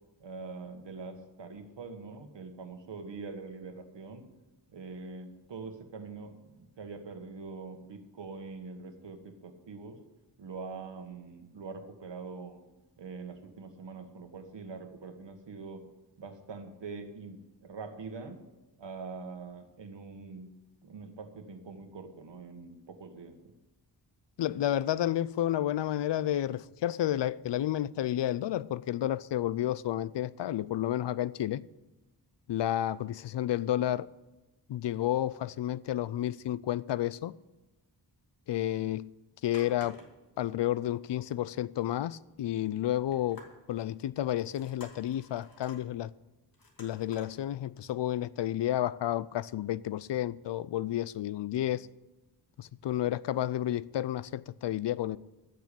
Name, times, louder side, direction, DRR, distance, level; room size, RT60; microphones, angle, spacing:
voice 1, 0.2-4.3 4.7-10.0 10.4-12.6 13.0-15.8 16.2-18.4 18.8-20.5 20.8-23.5, right 4 dB, 80° right, 1.7 m, -44 dB
voice 2, 24.4-31.6 32.5-34.1 34.7-37.4 38.5-39.1 39.4-40.0 40.4-43.4 43.7-46.1 46.8-51.9 52.6-55.2, left 12 dB, 75° left, 0.5 m, -31 dB
sound 1, 39.5-40.4 40.7-40.8 41.1-41.2 43.1-43.8 44.3-45.8 46.5-47.3 47.8-47.9, left 3 dB, 50° left, 2.4 m, -53 dB
14.0 x 6.8 x 8.5 m
wide cardioid pair, 155°, 43 cm